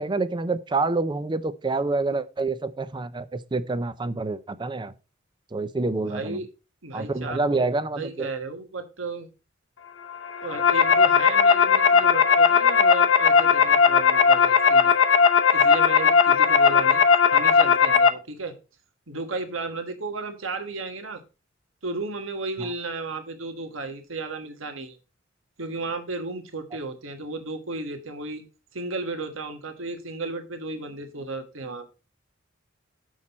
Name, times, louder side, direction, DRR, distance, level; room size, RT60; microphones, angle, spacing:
voice 1, 0.0-4.9 5.5-6.4 6.9-8.3 22.6-22.7, right 3 dB, 25° right, 0.5 m, -27 dB
voice 2, 6.1-6.5 6.8-7.6 8.0-9.3 10.4-14.9 15.5-18.5 19.1-21.2 21.8-25.0 25.6-28.4 28.7-31.9, right 3 dB, 75° right, 1.4 m, -34 dB
sound 1, 10.3-18.1, left 6 dB, 70° left, 0.8 m, -18 dB
7.4 x 6.4 x 4.1 m
head